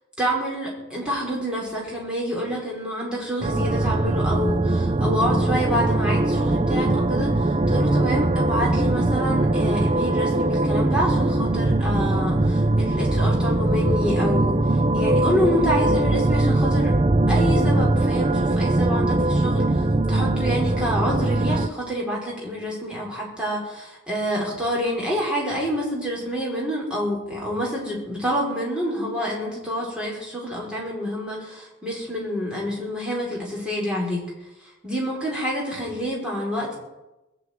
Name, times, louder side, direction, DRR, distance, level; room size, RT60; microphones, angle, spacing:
voice 1, 0.2-14.6 14.9-16.9 17.3-19.6 20.1-34.2 34.8-36.8, equal, 5° right, -5 dB, 5.0 m, -27 dB
sound 1, 3.4-21.7, right 2 dB, 25° right, 0.5 m, -21 dB
21.0 x 7.1 x 9.3 m, 1.0 s
head